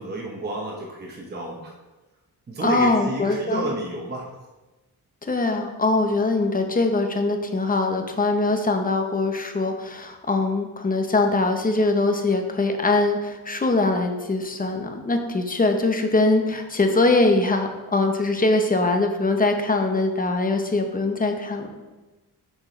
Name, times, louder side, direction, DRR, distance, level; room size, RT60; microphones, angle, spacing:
voice 1, 0.0-1.7 2.5-4.3, right 2 dB, 25° right, -1 dB, 0.9 m, -30 dB
voice 2, 2.6-3.7 5.3-21.7, left 2 dB, 20° left, 5 dB, 0.7 m, -22 dB
6.4 x 4.9 x 4.3 m, 1.1 s
wide cardioid pair, 140°, 39 cm